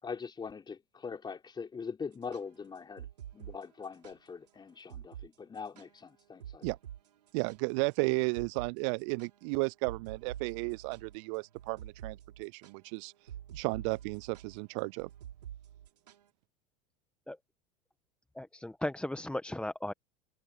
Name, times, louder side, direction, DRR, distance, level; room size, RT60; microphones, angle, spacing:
voice 1, 0.0-3.1 3.3-6.7, left 5 dB, 20° left, 5.1 m, -42 dB
sound 1, 2.1-4.2 4.5-4.6 4.9-5.3 5.5-7.9 8.3-8.7 9.0-16.3, right 10 dB, 70° right, 3.7 m, -47 dB
voice 2, 7.3-13.1 13.5-15.1, right 34 dB, 50° right, 0.4 m, -33 dB
voice 3, 18.3-19.9, left 1 dB, 5° left, 1.5 m, -36 dB
figure-of-eight pair, 80°, 21 cm